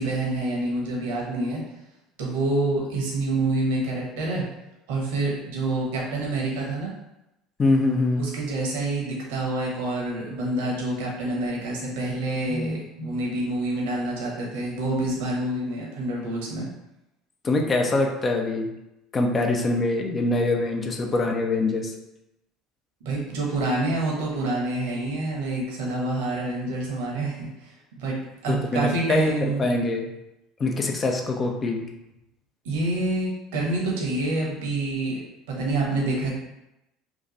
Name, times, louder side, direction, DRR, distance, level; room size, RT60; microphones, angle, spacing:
voice 1, 0.0-1.6 2.2-4.4 4.9-6.9 8.2-16.7 23.0-28.2 28.4-29.8 32.6-35.2 35.5-36.3, right 2 dB, 70° right, -3 dB, 1.0 m, -27 dB
voice 2, 7.6-8.3 17.4-18.7 19.1-21.9 28.5-30.1 30.6-31.8, left 2 dB, 30° left, 2 dB, 0.6 m, -24 dB
3.0 x 2.5 x 3.9 m, 0.91 s
hypercardioid pair, 70°, 0 cm